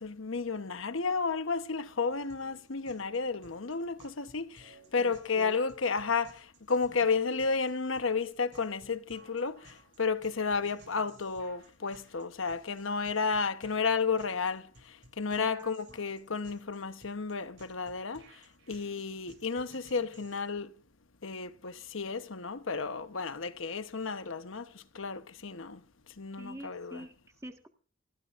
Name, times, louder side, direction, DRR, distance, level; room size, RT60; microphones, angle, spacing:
voice 1, 0.0-14.7 15.2-18.2 18.7-20.7 21.2-25.8 26.2-27.0, left 4 dB, 75° left, 1.1 m, -32 dB
sound 1, 2.3-20.4, right 2 dB, 60° right, 7.3 m, -58 dB
voice 2, 5.0-5.6 15.4-16.0 26.4-27.7, right 1 dB, 15° right, 1.6 m, -47 dB
25.0 x 18.5 x 2.6 m
head